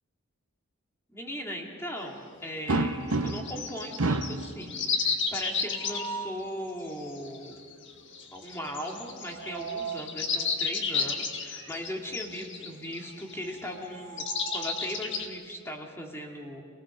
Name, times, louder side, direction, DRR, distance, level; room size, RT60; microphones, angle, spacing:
voice 1, 1.1-7.5 8.3-14.2 14.5-16.6, equal, 10° left, 0 dB, 2.7 m, -38 dB
sound 1, 2.0-2.1 3.1-6.1 7.0-13.7 14.2-15.3, left 5 dB, 60° left, 1.9 m, -32 dB
sound 2, 2.7-3.6 4.0-4.5 5.7-6.5 9.1-10.1 11.6-11.7 12.1-12.2 13.7-15.0, right 3 dB, 70° right, 1.1 m, -32 dB
28.0 x 19.0 x 6.5 m, 2.1 s
head